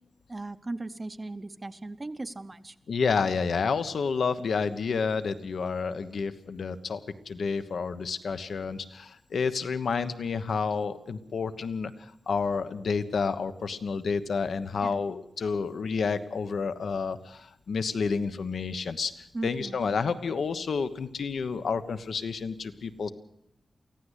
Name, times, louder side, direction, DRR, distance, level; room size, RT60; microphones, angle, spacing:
voice 1, 0.3-2.7 14.8-15.0 19.3-19.8, right 2 dB, 20° right, 10 dB, 0.7 m, -37 dB
voice 2, 2.9-7.0 7.3-19.1 19.4-23.1, left 5 dB, 75° left, 11 dB, 1.1 m, -30 dB
24.0 x 15.5 x 8.3 m, 0.82 s
wide cardioid pair, 170°, 0 cm